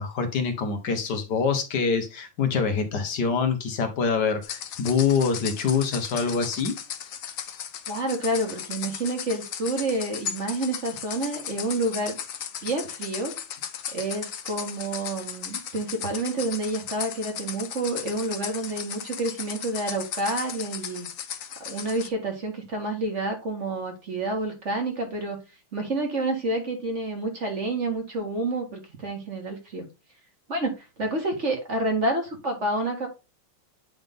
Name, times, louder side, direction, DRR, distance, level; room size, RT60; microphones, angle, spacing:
voice 1, 0.0-6.7, left 5 dB, 55° left, 6 dB, 1.8 m, -25 dB
sound 1, 4.4-22.1, left 8 dB, 70° left, 0.7 m, -36 dB
voice 2, 7.9-12.2 12.6-13.3 13.9-21.1 21.6-25.4 25.7-29.9 30.5-30.7 31.0-33.1, right 2 dB, 35° right, 3 dB, 1.8 m, -29 dB
9.2 x 3.6 x 3.7 m, 0.28 s
omnidirectional pair, 2.4 m